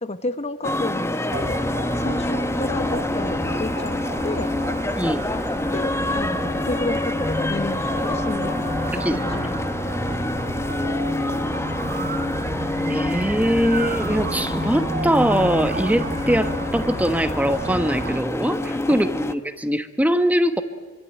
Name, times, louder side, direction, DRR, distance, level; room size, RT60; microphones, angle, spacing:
voice 1, 0.0-1.6 1.9-4.5 5.7-9.8 18.9-19.0, left 2 dB, 30° left, 11 dB, 1.0 m, -31 dB
sound 1, 0.6-19.3, left 1 dB, 10° left, 0.9 m, -27 dB
sound 2, 1.3-18.2, right 2 dB, 40° right, 2.7 m, -32 dB
voice 2, 5.0-5.3 9.0-9.2 12.9-20.6, equal, 5° right, 9 dB, 1.1 m, -22 dB
26.0 x 24.5 x 9.1 m, 1.3 s
head